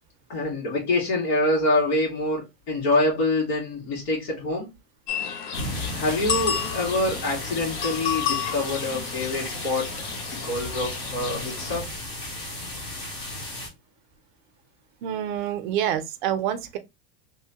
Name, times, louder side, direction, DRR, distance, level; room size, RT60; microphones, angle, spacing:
voice 1, 0.3-4.7 5.9-9.9 10.4-11.9, left 2 dB, 75° left, 1.8 m, -25 dB
sound 1, 5.1-11.8, left 8 dB, 50° left, 0.6 m, -32 dB
sound 2, 5.5-13.7, left 1 dB, 15° left, 0.3 m, -34 dB
voice 2, 15.0-16.8, right 10 dB, 55° right, 0.4 m, -27 dB
3.0 x 2.0 x 2.7 m
supercardioid pair, 175°, 30 cm